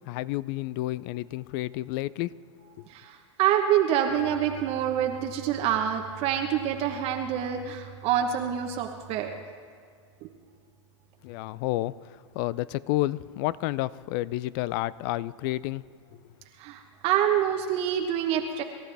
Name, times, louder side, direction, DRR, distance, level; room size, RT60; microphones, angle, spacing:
voice 1, 0.1-2.3 2.8-2.9 11.2-15.9 16.1-16.2, left 16 dB, 45° left, 21 dB, 0.4 m, -30 dB
voice 2, 2.9-9.3 10.2-10.3 16.6-18.6, right 10 dB, 40° right, 3 dB, 1.1 m, -26 dB
26.0 x 13.5 x 3.4 m, 2.1 s
hypercardioid pair, 120°, 16 cm